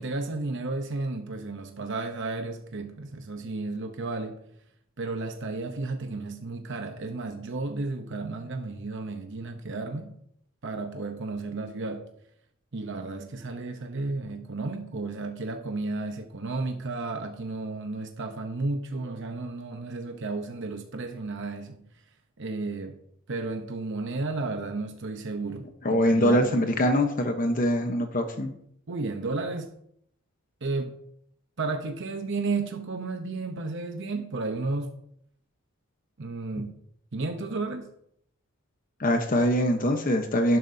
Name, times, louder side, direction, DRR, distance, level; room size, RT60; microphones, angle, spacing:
voice 1, 0.0-4.4 5.0-10.2 10.6-12.1 12.7-21.9 22.4-23.0 23.3-26.7 28.9-29.7 30.6-31.0 31.6-34.9 36.2-36.7 37.1-37.9, right 3 dB, 60° right, 0.8 m, -33 dB
voice 2, 25.8-28.5 39.0-40.6, equal, 40° left, 0.9 m, -23 dB
12.0 x 11.0 x 2.7 m
head